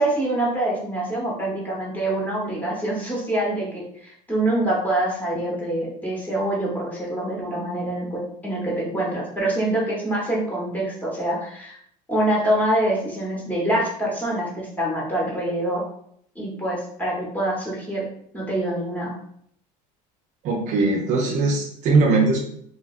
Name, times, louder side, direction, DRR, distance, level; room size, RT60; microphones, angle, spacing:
voice 1, 0.0-11.8 12.1-15.8 16.3-18.1 18.3-19.1, right 1 dB, 10° left, -4 dB, 0.9 m, -25 dB
voice 2, 20.4-22.4, right 3 dB, 45° right, 1 dB, 0.5 m, -20 dB
2.8 x 2.6 x 2.3 m, 0.67 s
cardioid pair, 140°, 17 cm